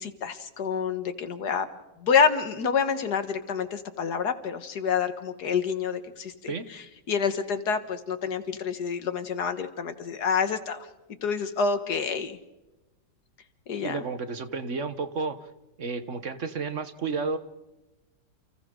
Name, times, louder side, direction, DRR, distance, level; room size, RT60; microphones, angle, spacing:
voice 1, 0.0-1.7 2.0-10.9 11.2-12.4 13.7-14.0, left 6 dB, 65° left, 9 dB, 2.0 m, -28 dB
voice 2, 13.8-15.5 15.8-17.4, right 4 dB, 45° right, 10 dB, 1.4 m, -31 dB
29.5 x 29.5 x 3.8 m, 1.0 s
omnidirectional pair, 1.9 m